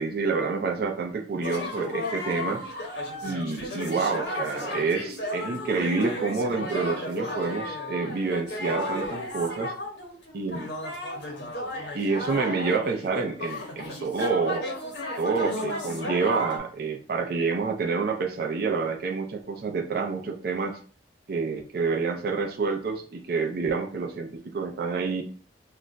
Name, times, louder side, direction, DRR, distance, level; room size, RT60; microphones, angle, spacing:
voice 1, 0.0-2.6 3.2-9.7 10.3-10.7 11.9-14.7 15.2-20.8 21.3-25.2, right 4 dB, 60° right, 3 dB, 0.4 m, -28 dB
sound 1, 1.4-16.6, left 1 dB, 80° left, 0.8 m, -34 dB
2.4 x 2.2 x 3.8 m, 0.40 s
head